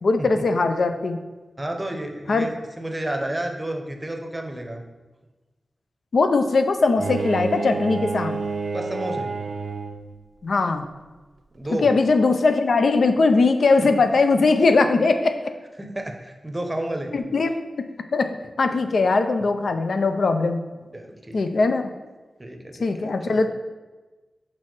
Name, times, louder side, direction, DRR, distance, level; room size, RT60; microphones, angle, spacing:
voice 1, 0.0-1.2 2.3-2.5 6.1-8.4 10.4-10.9 11.7-15.5 17.1-17.5 18.1-20.6 21.3-21.9 22.8-23.5, left 3 dB, 70° left, 8 dB, 0.5 m, -20 dB
voice 2, 1.6-4.9 8.7-9.3 11.5-11.9 13.8-13.9 15.8-17.3 20.9-21.4 22.4-23.4, right 1 dB, 15° right, 4 dB, 0.8 m, -31 dB
Bowed string instrument, 7.0-10.2, right 4 dB, 75° right, 0.5 m, -29 dB
6.2 x 4.3 x 4.8 m, 1.2 s
wide cardioid pair, 135°, 0 cm